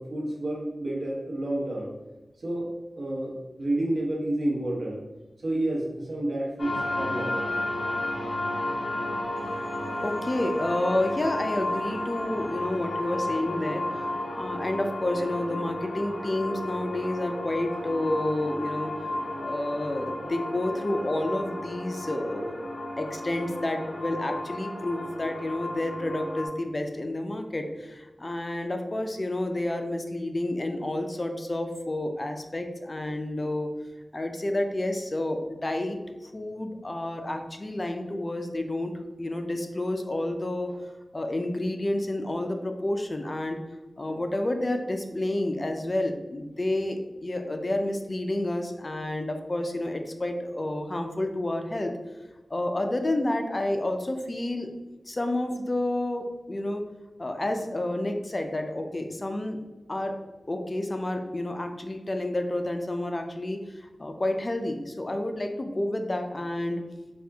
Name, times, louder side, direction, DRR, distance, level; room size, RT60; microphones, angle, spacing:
voice 1, 0.0-1.9 2.4-2.7 3.0-5.0 5.4-7.4 44.1-44.2, right 1 dB, 75° right, -3 dB, 1.1 m, -30 dB
sound 1, 6.6-26.5, left 1 dB, 65° left, 1.0 m, -33 dB
voice 2, 10.0-13.9 14.3-19.0 19.4-22.6 23.0-33.7 34.1-38.9 39.2-40.8 41.1-43.6 44.0-51.9 52.5-54.7 55.1-56.8 57.2-59.6 59.9-60.2 60.5-66.8, left 1 dB, 40° left, 5 dB, 0.4 m, -30 dB
4.3 x 2.4 x 3.4 m, 1.1 s
wide cardioid pair, 65°, 0 cm